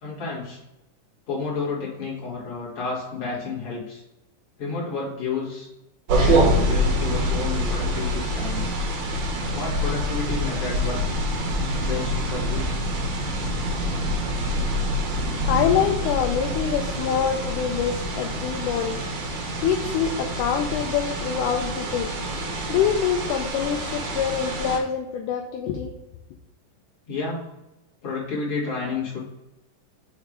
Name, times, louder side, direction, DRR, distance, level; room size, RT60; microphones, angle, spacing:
voice 1, 0.0-0.6 1.3-4.0 4.6-5.7 6.1-8.6 9.5-11.3 11.8-12.7 27.1-27.5 28.0-29.2, left 4 dB, 45° left, -6 dB, 2.9 m, -31 dB
sound 1, 6.1-24.8, equal, 65° right, 2.3 m, -26 dB
voice 2, 15.5-19.0 19.6-22.1 22.7-25.9, left 8 dB, 80° left, 4 dB, 2.0 m, -25 dB
6.5 x 3.5 x 4.8 m, 0.95 s
omnidirectional pair, 3.9 m